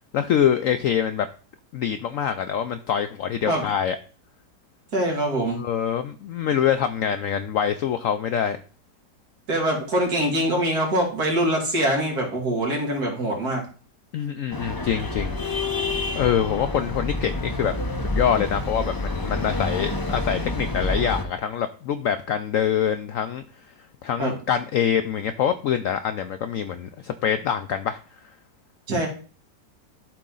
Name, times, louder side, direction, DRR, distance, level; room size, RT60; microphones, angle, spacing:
voice 1, 0.1-1.3 1.7-4.0 5.6-8.6 14.1-15.4 16.1-17.7 18.0-23.4 24.0-28.0, left 8 dB, 75° left, 10 dB, 0.7 m, -25 dB
voice 2, 4.9-5.6 9.5-13.6 24.2-24.3 28.9-29.1, right 1 dB, 60° right, -1 dB, 2.9 m, -23 dB
sound 1, 14.5-21.2, left 2 dB, 30° left, 0.4 m, -28 dB
12.0 x 4.1 x 3.9 m, 0.39 s
omnidirectional pair, 1.8 m